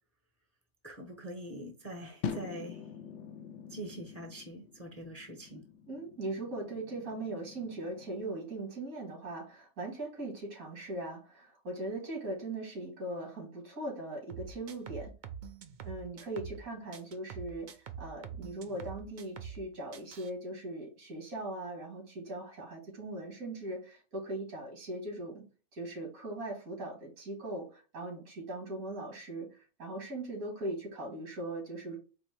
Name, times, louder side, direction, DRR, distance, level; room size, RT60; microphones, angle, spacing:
voice 1, 0.8-2.8 3.7-5.6, right 1 dB, 15° left, 0.7 m, -44 dB
sound 1, 2.2-8.4, left 7 dB, 65° left, 0.8 m, -44 dB
voice 2, 5.9-15.1 15.8-17.7 18.0-25.4 25.7-32.0, right 2 dB, 85° right, 2.3 m, -40 dB
sound 2, 14.3-16.6 16.9-19.6 19.9-20.3, right 7 dB, 70° right, 0.4 m, -45 dB
4.4 x 2.7 x 4.4 m
omnidirectional pair, 1.5 m